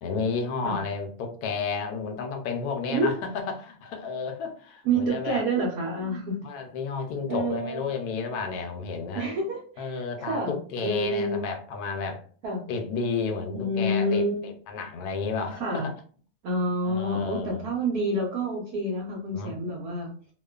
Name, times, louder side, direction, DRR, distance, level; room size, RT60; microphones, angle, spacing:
voice 1, 0.0-5.4 5.9-9.3 9.8-12.2 12.7-15.9 16.8-17.7 19.3-19.5, left 5 dB, 80° left, 4 dB, 1.1 m, -32 dB
voice 2, 4.8-6.4 7.3-7.8 9.1-11.4 12.4-12.6 13.5-14.4 15.6-15.9 16.4-20.1, right 1 dB, 75° right, -3 dB, 1.2 m, -28 dB
2.9 x 2.2 x 2.3 m, 0.44 s
omnidirectional pair, 1.7 m